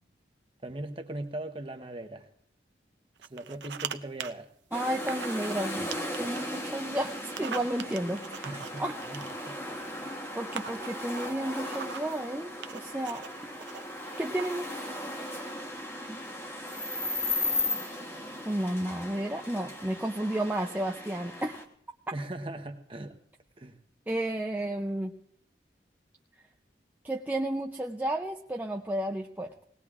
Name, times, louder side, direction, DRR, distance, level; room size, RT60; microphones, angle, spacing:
voice 1, 0.6-2.3 3.3-4.5 8.4-9.5 22.1-23.1 23.6-23.8, right 1 dB, 30° right, 6 dB, 0.9 m, -39 dB
sound 1, 3.2-4.3 5.1-5.7 5.9-6.5 7.2-9.6 10.2-10.3 10.6-12.1 12.6-13.8 14.4-14.7, right 7 dB, 80° right, 0.6 m, -40 dB
sound 2, 4.7-21.6, left 1 dB, 15° left, 1.1 m, -36 dB
voice 2, 4.7-5.9 6.2-8.9 10.4-13.3 13.7-13.8 14.2-14.9 16.1-16.2 18.5-21.6 24.1-25.2 27.0-29.5, right 1 dB, 10° right, 1 dB, 0.4 m, -32 dB
19.5 x 19.0 x 2.4 m, 0.68 s
head